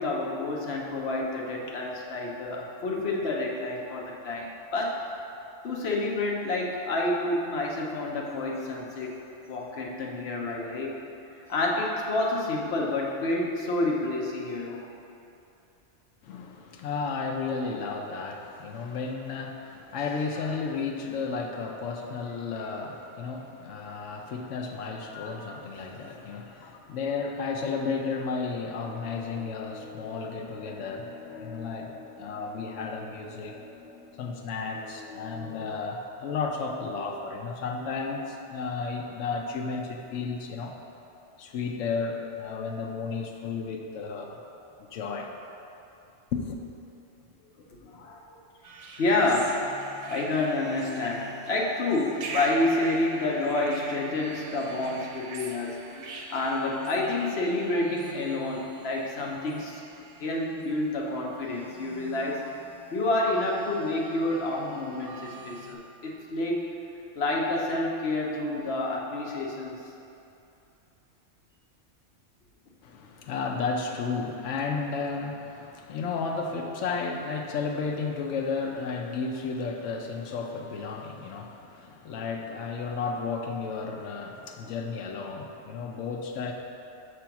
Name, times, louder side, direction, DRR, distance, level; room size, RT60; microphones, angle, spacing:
voice 1, 0.0-5.0 5.6-9.1 9.5-11.0 11.5-14.8 23.8-23.9 47.7-48.2 49.0-49.6 50.1-62.5 62.9-66.7 67.1-69.8, left 2 dB, 60° left, -2 dB, 1.1 m, -29 dB
voice 2, 16.2-33.6 34.2-40.8 41.4-44.4 44.9-45.3 46.3-46.6 72.8-86.5, left 4 dB, 85° left, 2 dB, 1.0 m, -33 dB
sound 1, 28.8-35.8, left 3 dB, 45° left, 0.6 m, -46 dB
sound 2, 48.6-65.8, right 3 dB, 90° right, 1.1 m, -43 dB
6.3 x 3.4 x 5.8 m, 2.8 s
omnidirectional pair, 1.2 m